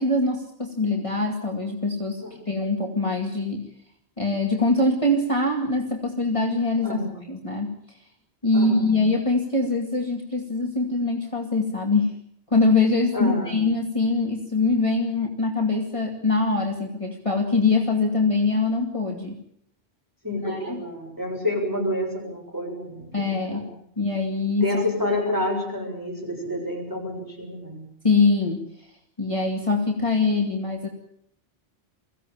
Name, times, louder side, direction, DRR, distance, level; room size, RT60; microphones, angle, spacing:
voice 1, 0.0-3.7 4.2-7.0 7.3-7.8 8.4-12.1 12.5-19.4 20.4-20.8 23.1-23.7 24.0-24.7 28.0-28.6 29.2-30.9, left 3 dB, 30° left, 0 dB, 2.3 m, -23 dB
voice 2, 6.8-7.2 8.5-8.9 13.1-13.6 20.2-23.1 23.5-23.6 24.6-27.8, left 1 dB, 15° right, -1 dB, 7.8 m, -28 dB
23.5 x 16.0 x 8.8 m, 0.69 s
omnidirectional pair, 1.1 m